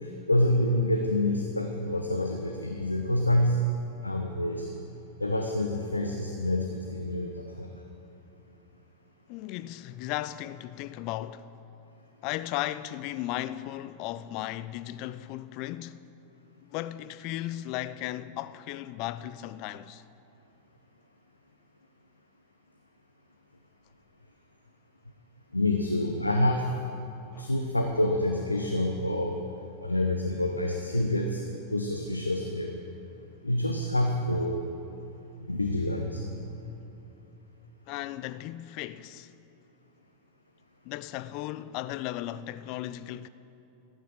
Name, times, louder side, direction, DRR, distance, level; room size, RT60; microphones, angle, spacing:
voice 1, 0.0-3.6 4.0-4.7 5.2-7.7 25.5-26.7 27.4-29.4 29.8-31.4 31.7-32.7 33.4-34.6 35.4-36.6, left 1 dB, 85° left, 0.8 m, -27 dB
voice 2, 9.3-11.5 12.2-16.0 16.7-20.0 27.3-27.5 37.9-39.3 40.8-43.3, left 14 dB, 45° left, 0.4 m, -36 dB
14.5 x 9.1 x 6.6 m
figure-of-eight pair, 90°, 0 cm